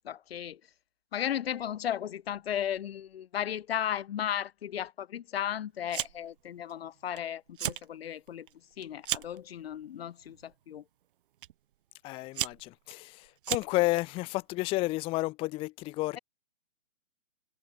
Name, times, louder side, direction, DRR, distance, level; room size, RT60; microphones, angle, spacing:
voice 1, 0.0-0.6 1.1-8.5 8.8-10.8, left 10 dB, 60° left, 0.9 m, -35 dB
Fire, 5.9-6.4 6.7-7.2 7.5-7.9 8.3-9.4 10.2-10.5 11.4-11.5 12.1-14.0, right 12 dB, 50° right, 2.9 m, -35 dB
voice 2, 12.0-16.2, left 20 dB, 15° left, 0.7 m, -31 dB
hypercardioid pair, 140°, 34 cm